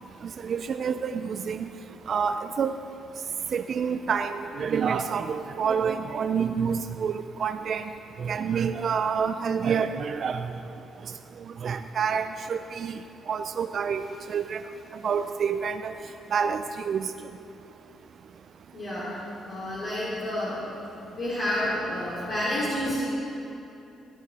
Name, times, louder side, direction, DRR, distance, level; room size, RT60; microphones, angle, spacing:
voice 1, 0.4-1.7 2.1-2.7 3.5-7.9 8.2-10.5 11.6-13.0 13.3-14.0 14.3-14.6 15.0-15.9 16.3-17.1, right 6 dB, 55° right, 8 dB, 0.4 m, -28 dB
voice 2, 18.7-20.7 21.1-23.0, left 1 dB, 50° left, -10 dB, 3.0 m, -30 dB
16.0 x 9.1 x 4.1 m, 2.9 s
cardioid pair, 90°, 0 cm